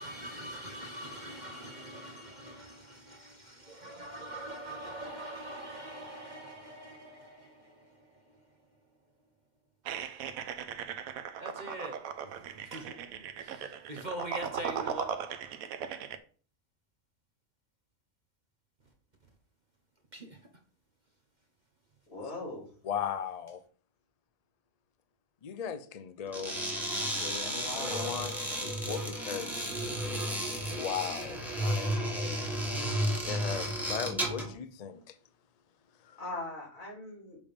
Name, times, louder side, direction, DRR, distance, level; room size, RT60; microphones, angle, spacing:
voice 1, 0.0-8.5 11.4-15.2 20.1-20.4, right 1 dB, 40° right, 0.8 m, -43 dB
sound 1, 9.9-16.2, right 8 dB, 85° right, 1.1 m, -38 dB
voice 2, 22.1-22.7 27.4-28.3 36.2-37.4, left 2 dB, 75° left, 3.8 m, -40 dB
voice 3, 22.8-23.6 25.4-26.6 27.1-28.3 28.6-29.7 30.6-32.5 33.2-35.2 36.0-36.2, left 7 dB, 55° left, 0.4 m, -38 dB
sound 2, 26.3-34.5, equal, ahead, 1.5 m, -33 dB
7.1 x 3.4 x 5.1 m
omnidirectional pair, 1.4 m